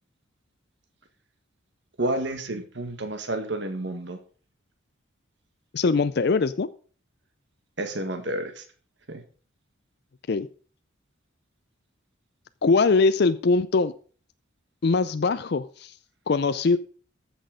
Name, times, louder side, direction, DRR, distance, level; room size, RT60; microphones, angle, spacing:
voice 1, 2.0-4.2 7.8-8.6 9.1-9.2, right 1 dB, 60° right, 7 dB, 1.8 m, -30 dB
voice 2, 5.7-6.7 10.3-10.5 12.6-13.9 14.8-15.9 16.3-16.8, left 4 dB, 55° left, 13 dB, 0.4 m, -22 dB
14.0 x 6.3 x 5.1 m, 0.41 s
head